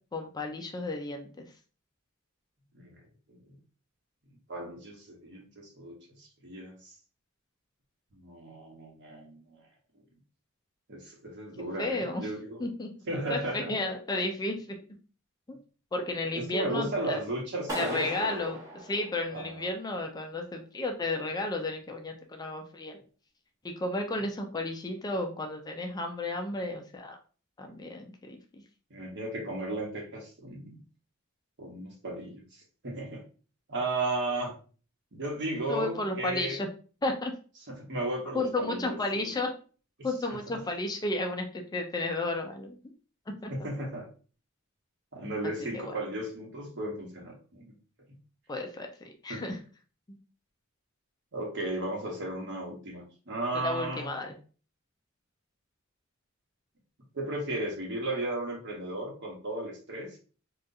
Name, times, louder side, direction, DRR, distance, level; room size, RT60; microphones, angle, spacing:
voice 1, 0.1-1.5 11.8-12.3 12.6-12.9 13.3-14.8 15.5-15.6 15.9-17.2 17.7-23.0 23.6-27.2 27.6-28.6 35.7-36.7 37.0-37.3 38.3-39.5 40.0-42.8 43.3-43.7 45.4-45.9 48.5-48.9 49.2-49.6 50.1-50.2 53.5-54.3, left 2 dB, 20° left, 4 dB, 0.4 m, -33 dB
voice 2, 4.5-6.9 8.1-9.6 10.9-12.6 13.1-13.7 16.3-18.6 19.3-19.7 28.9-30.8 31.6-33.2 33.7-34.5 35.1-36.6 37.7-39.3 43.5-44.1 45.1-47.7 49.3-49.4 51.3-54.1 57.1-60.2, right 2 dB, 60° right, 0 dB, 1.1 m, -35 dB
Clapping, 17.7-19.7, equal, 15° right, 1.1 m, -38 dB
3.8 x 2.4 x 2.6 m, 0.38 s
head